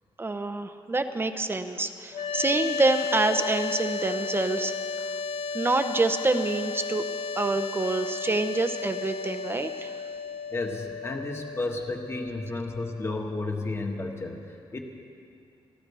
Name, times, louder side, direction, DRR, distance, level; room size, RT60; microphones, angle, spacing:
voice 1, 0.2-4.7 5.5-7.0 7.4-9.9, right 2 dB, 25° right, 7 dB, 0.7 m, -27 dB
sound 1, 2.1-13.2, left 4 dB, 85° left, 0.5 m, -34 dB
voice 2, 10.5-14.8, left 2 dB, 30° left, 2 dB, 1.4 m, -32 dB
30.0 x 12.0 x 3.4 m, 2.5 s
cardioid pair, 105°, 9 cm